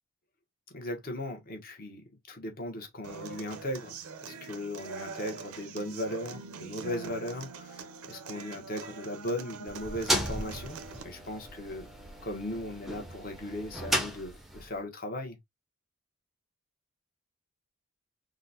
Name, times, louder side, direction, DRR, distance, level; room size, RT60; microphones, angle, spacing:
voice 1, 0.7-11.9 12.2-15.4, left 1 dB, 40° left, 0.8 m, -38 dB
Human voice / Acoustic guitar, 3.0-11.0, right 5 dB, 85° right, 0.5 m, -43 dB
sound 1, 9.7-14.8, equal, ahead, 0.4 m, -35 dB
3.8 x 2.0 x 2.5 m
head